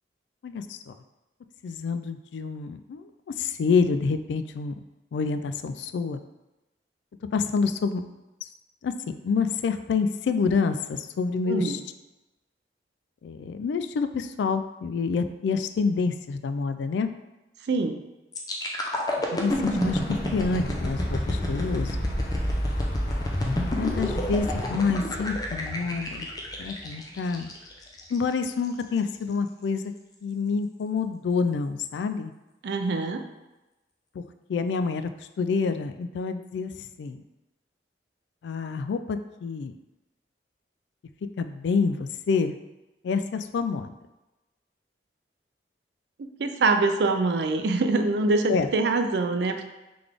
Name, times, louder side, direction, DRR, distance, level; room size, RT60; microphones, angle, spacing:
voice 1, 0.4-1.0 1.6-3.1 3.4-4.7 5.1-6.2 7.3-8.0 8.8-8.9 9.2-11.8 13.2-17.1 19.3-20.0 20.3-22.0 23.7-26.3 26.6-27.5 28.1-29.8 30.2-32.3 34.2-34.3 34.5-35.1 35.4-36.7 37.0-37.2 38.4-39.7 41.4-42.5 43.0-43.9 48.5-48.7, left 5 dB, 80° left, 10 dB, 0.3 m, -27 dB
voice 2, 17.7-18.0 32.6-33.2 46.4-49.6, right 3 dB, 70° right, 7 dB, 0.4 m, -24 dB
sound 1, 18.3-28.2 28.6-28.8, left 1 dB, 20° left, 0.5 m, -29 dB
Insect / Thunder / Rain, 19.5-24.7, left 1 dB, 55° left, 0.9 m, -37 dB
3.9 x 3.3 x 3.5 m, 1.0 s
head